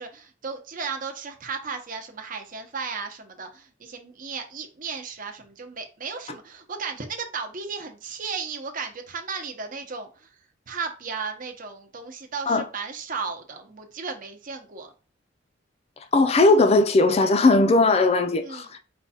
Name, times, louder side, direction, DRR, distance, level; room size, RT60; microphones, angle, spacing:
voice 1, 0.0-10.3 10.7-14.9 18.4-18.7, right 5 dB, 45° right, 0.8 m, -35 dB
voice 2, 16.1-18.8, left 2 dB, 35° left, 0.4 m, -18 dB
4.5 x 2.3 x 4.2 m
head